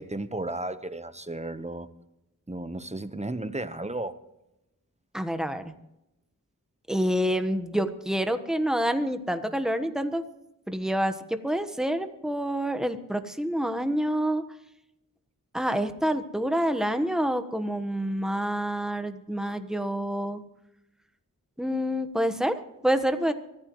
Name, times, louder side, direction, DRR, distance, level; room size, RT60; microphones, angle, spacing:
voice 1, 0.0-1.9 2.5-4.1, right 2 dB, 20° right, 1.0 m, -34 dB
voice 2, 5.1-5.6 6.9-10.2 10.7-14.4 15.5-20.4 21.6-23.3, equal, ahead, 1.2 m, -27 dB
23.5 x 14.5 x 3.1 m
wide cardioid pair, 45°, 33 cm